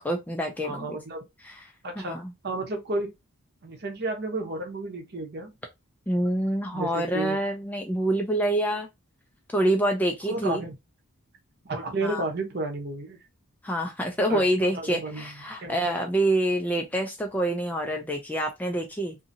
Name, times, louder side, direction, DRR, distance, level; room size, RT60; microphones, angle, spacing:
voice 1, 0.0-1.0 1.4-1.7 2.0-2.3 6.1-8.9 9.5-10.6 12.0-12.2 13.6-19.2, right 1 dB, 5° left, 0.3 m, -26 dB
voice 2, 0.6-1.2 1.8-3.1 3.6-5.5 6.7-7.4 10.3-10.8 11.6-13.2 14.3-14.5 14.7-15.3 15.6-15.8, right 2 dB, 45° right, 0.8 m, -32 dB
2.7 x 2.6 x 2.6 m
head